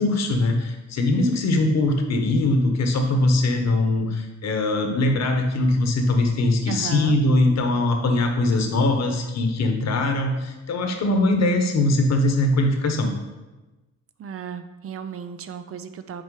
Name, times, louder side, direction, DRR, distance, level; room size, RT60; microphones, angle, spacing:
voice 1, 0.0-13.1, left 2 dB, 60° left, 4 dB, 1.1 m, -21 dB
voice 2, 6.7-7.2 14.2-16.2, right 7 dB, 50° right, 10 dB, 0.5 m, -34 dB
6.0 x 4.4 x 4.8 m, 1.1 s
cardioid pair, 90°, 30 cm